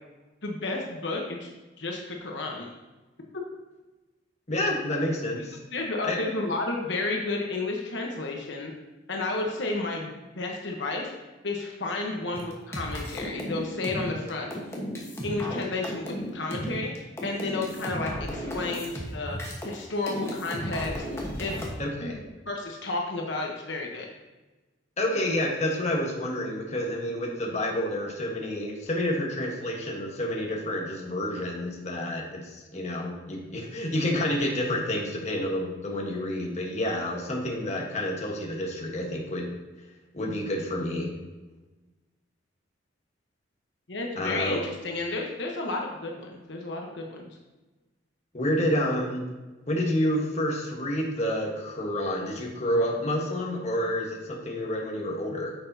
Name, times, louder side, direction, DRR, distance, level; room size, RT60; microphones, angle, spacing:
voice 1, 0.4-1.5 1.8-2.7 5.7-8.7 9.1-11.1 11.4-14.5 15.2-19.4 19.6-21.7 22.0-22.2 22.5-24.1 43.9-47.3, left 2 dB, 70° left, 0 dB, 1.1 m, -32 dB
voice 2, 4.5-5.6 6.0-6.2 21.8-22.2 25.0-39.5 40.1-41.1 44.2-44.6 48.3-49.2 49.7-55.5, left 1 dB, 35° left, -1 dB, 1.4 m, -29 dB
sound 1, 12.3-19.8 20.1-21.7, equal, 15° left, 1.2 m, -34 dB
9.4 x 6.9 x 2.8 m, 1.2 s
head